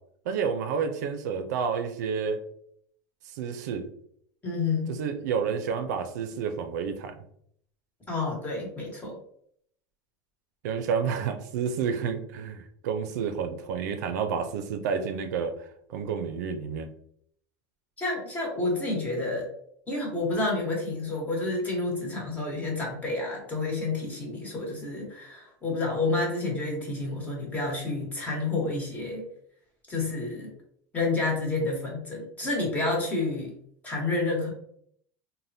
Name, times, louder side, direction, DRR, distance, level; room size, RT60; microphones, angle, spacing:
voice 1, 0.3-2.4 3.4-3.9 4.9-7.1 10.6-16.9, right 6 dB, 90° right, 7 dB, 0.5 m, -30 dB
voice 2, 4.4-5.0 8.1-9.2 18.0-19.5 19.9-29.2 29.9-30.5 30.9-33.5 33.8-34.5, left 2 dB, 15° left, -2 dB, 1.1 m, -29 dB
3.3 x 2.2 x 2.7 m, 0.67 s
supercardioid pair, 140°, 9 cm